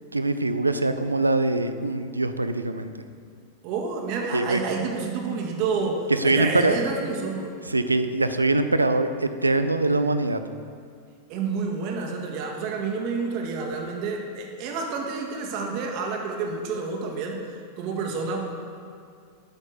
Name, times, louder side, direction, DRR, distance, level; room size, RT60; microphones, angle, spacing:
voice 1, 0.1-2.9 4.3-4.6 6.1-6.8 7.7-10.4, right 2 dB, 80° right, 10 dB, 0.5 m, -23 dB
voice 2, 3.6-7.5 11.3-18.4, right 4 dB, 45° right, 1 dB, 1.7 m, -29 dB
9.9 x 6.3 x 6.7 m, 2.2 s
figure-of-eight pair, 90°, 0 cm